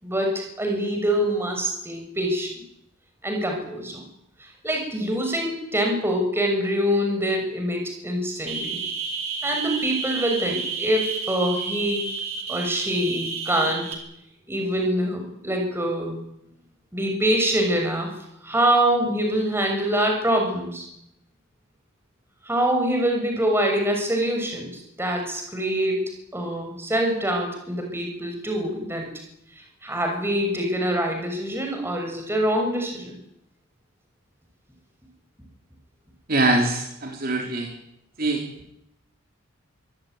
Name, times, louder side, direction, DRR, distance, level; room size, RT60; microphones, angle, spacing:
voice 1, 0.0-2.6 3.2-4.0 4.6-8.8 9.4-12.1 12.5-13.9 14.5-16.2 16.9-18.1 18.4-20.8 22.4-26.0 26.3-29.1 29.8-33.2, right 1 dB, 10° right, 2 dB, 6.7 m, -25 dB
sound 1, 8.5-13.9, right 5 dB, 90° right, 4.5 m, -31 dB
voice 2, 36.3-37.7 38.2-38.4, right 2 dB, 45° right, 2 dB, 3.8 m, -23 dB
24.0 x 17.5 x 9.4 m, 0.79 s
head